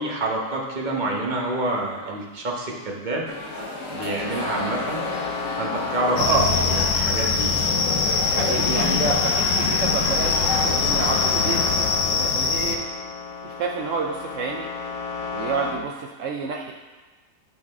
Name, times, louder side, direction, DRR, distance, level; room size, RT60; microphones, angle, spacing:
voice 1, 0.0-3.3 3.9-5.0 5.6-7.5, right 2 dB, 30° right, -2 dB, 1.1 m, -28 dB
sound 1, 3.3-11.8, left 2 dB, 50° left, 1.4 m, -31 dB
sound 2, 4.2-15.7, left 5 dB, 30° left, 1.4 m, -33 dB
sound 3, 6.2-12.8, left 5 dB, 80° left, 1.4 m, -23 dB
voice 2, 8.2-12.8 13.4-14.7 15.3-16.7, right 5 dB, 75° right, 0 dB, 0.7 m, -29 dB
12.5 x 4.3 x 3.6 m, 1.3 s
omnidirectional pair, 1.9 m